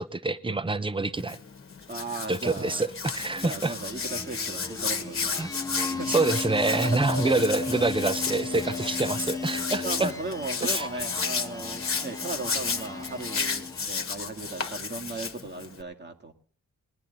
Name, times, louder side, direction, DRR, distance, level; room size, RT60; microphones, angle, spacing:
voice 1, 0.0-1.4 2.3-2.9 3.1-3.7 5.4-5.5 5.8-10.1 10.7-10.9, right 3 dB, 15° right, 0.8 m, -26 dB
Hands, 1.2-15.8, left 5 dB, 45° left, 1.5 m, -33 dB
voice 2, 1.9-2.9 3.4-6.1 6.7-7.3 7.6-7.7 9.8-16.3, right 2 dB, 35° right, 1.9 m, -37 dB
sound 1, 3.1-14.0, left 3 dB, 10° left, 1.2 m, -36 dB
sound 2, 6.0-13.7, left 2 dB, 75° right, 4.7 m, -42 dB
20.0 x 10.5 x 4.0 m
wide cardioid pair, 100°, 31 cm